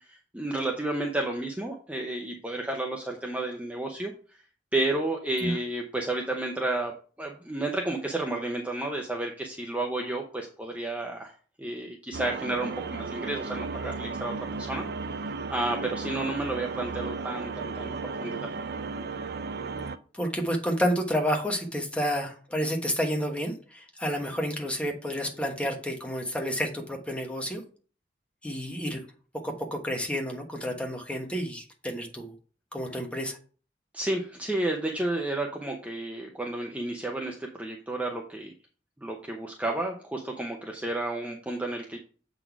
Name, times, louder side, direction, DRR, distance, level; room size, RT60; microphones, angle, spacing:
voice 1, 0.0-4.1 4.7-6.9 7.2-11.3 11.6-14.9 15.5-18.5 33.9-38.5 39.0-42.0, right 2 dB, 10° right, 1 dB, 0.7 m, -31 dB
sound 1, 12.1-20.0, right 4 dB, 60° right, 0.4 m, -35 dB
voice 2, 20.1-27.6 28.4-29.0 29.4-32.3 32.7-33.4, equal, 5° left, 2 dB, 1.3 m, -30 dB
7.6 x 4.1 x 4.6 m, 0.40 s
head